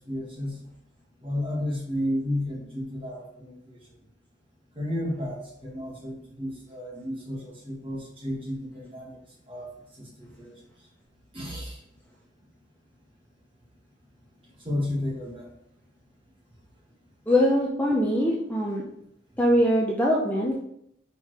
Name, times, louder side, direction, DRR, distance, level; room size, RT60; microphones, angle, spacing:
voice 1, 0.1-0.5 1.2-3.8 4.7-9.2 9.5-9.7 10.0-10.5 11.3-11.8 14.6-15.5, left 1 dB, 25° right, -3 dB, 1.7 m, -32 dB
voice 2, 17.3-18.8 19.4-20.6, equal, 10° left, -3 dB, 0.7 m, -22 dB
5.6 x 4.6 x 4.7 m, 0.74 s
head